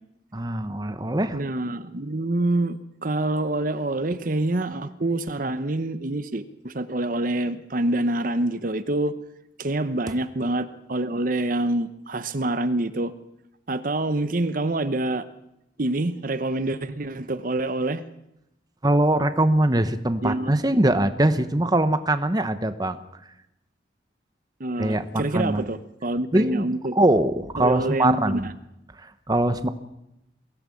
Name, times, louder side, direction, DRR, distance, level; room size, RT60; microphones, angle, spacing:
voice 1, 0.3-1.4 18.8-23.0 24.8-25.7 26.3-26.7 26.9-28.5 29.3-29.7, right 1 dB, 20° right, 10 dB, 1.0 m, -22 dB
voice 2, 1.3-9.1 9.6-13.1 13.7-15.2 15.8-18.0 20.2-20.5 24.6-27.0 27.6-28.5, right 2 dB, 45° right, 12 dB, 0.9 m, -26 dB
23.0 x 16.5 x 8.5 m, 0.88 s
head